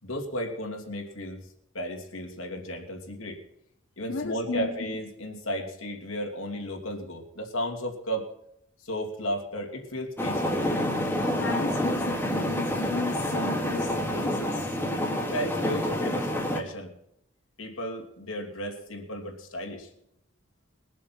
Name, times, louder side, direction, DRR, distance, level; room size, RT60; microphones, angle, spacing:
voice 1, 0.0-1.5 1.7-3.4 4.0-8.3 8.8-10.7 15.3-16.9 17.6-19.9, equal, 90° left, 2.9 m, -34 dB
voice 2, 4.1-4.7 11.4-14.7, left 3 dB, 70° left, 1.3 m, -34 dB
sound 1, 10.2-16.6, left 1 dB, 10° left, 1.7 m, -28 dB
22.0 x 7.3 x 6.0 m
head